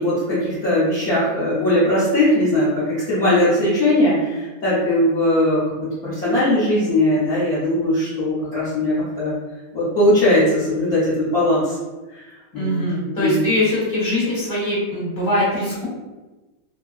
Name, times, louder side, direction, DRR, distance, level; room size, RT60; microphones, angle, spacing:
voice 1, 0.0-5.6 6.0-9.3 9.7-11.8 12.1-12.2 12.5-12.8 13.2-13.4, left 1 dB, 55° left, -13 dB, 1.2 m, -19 dB
voice 2, 12.5-15.9, left 1 dB, 15° left, -9 dB, 0.8 m, -22 dB
3.5 x 2.1 x 2.3 m, 1.2 s
omnidirectional pair, 2.2 m